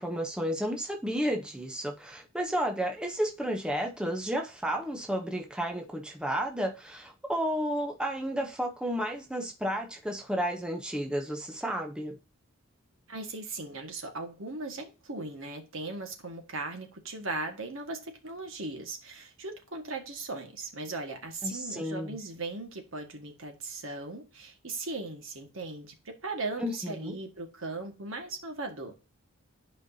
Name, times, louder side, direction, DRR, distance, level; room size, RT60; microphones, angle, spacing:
voice 1, 0.0-12.2 21.4-22.2 26.6-27.2, equal, 5° right, 0.7 m, -32 dB
voice 2, 13.1-28.9, right 3 dB, 65° right, 1.7 m, -38 dB
11.0 x 5.1 x 2.7 m
head